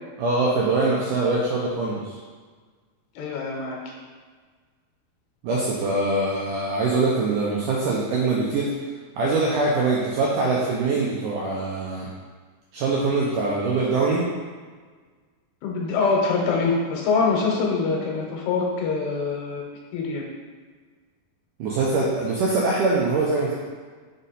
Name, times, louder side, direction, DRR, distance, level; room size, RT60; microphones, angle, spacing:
voice 1, 0.2-2.1 5.4-8.7 9.2-12.1 12.7-14.3 21.6-23.5, right 3 dB, 85° right, -5 dB, 1.9 m, -23 dB
voice 2, 3.2-3.8 15.6-19.6 19.9-20.3, left 4 dB, 80° left, -1 dB, 2.9 m, -24 dB
6.2 x 4.0 x 4.1 m, 1.5 s
omnidirectional pair, 4.6 m